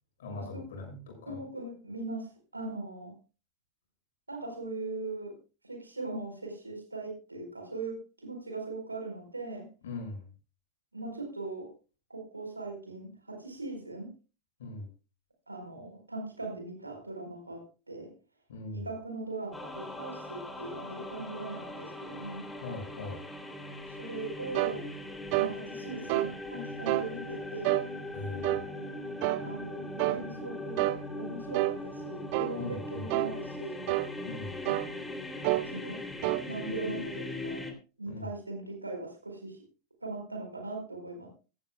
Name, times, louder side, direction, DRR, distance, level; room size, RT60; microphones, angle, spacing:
voice 1, 0.2-1.4 9.8-10.2 14.6-14.9 18.5-18.9 22.6-23.2 28.1-28.6 32.6-33.1 34.2-34.6 38.1-38.3, left 2 dB, 60° left, 3 dB, 6.4 m, -40 dB
voice 2, 1.3-3.1 4.3-5.4 5.6-9.7 10.9-11.7 12.1-14.1 15.5-18.1 18.7-22.5 23.9-24.9 25.4-27.8 29.4-30.9 31.2-33.9 34.7-35.2 35.7-36.0 36.5-37.7 38.0-39.6 40.0-41.3, right 2 dB, 80° right, 4 dB, 4.4 m, -40 dB
sound 1, 19.5-37.7, left 2 dB, 5° left, 2.8 m, -40 dB
sound 2, 24.5-24.8 25.3-25.6 26.1-26.3 26.9-27.1 27.6-27.9 28.4-28.7 29.2-29.5 30.0-30.2 30.8-31.0 31.5-31.8 32.3-32.6 33.1-33.3 33.9-34.1 34.7-34.9 35.4-35.7 36.2-36.5, right 19 dB, 45° right, 0.5 m, -28 dB
16.0 x 14.5 x 2.3 m, 0.33 s
figure-of-eight pair, 90°, 0 cm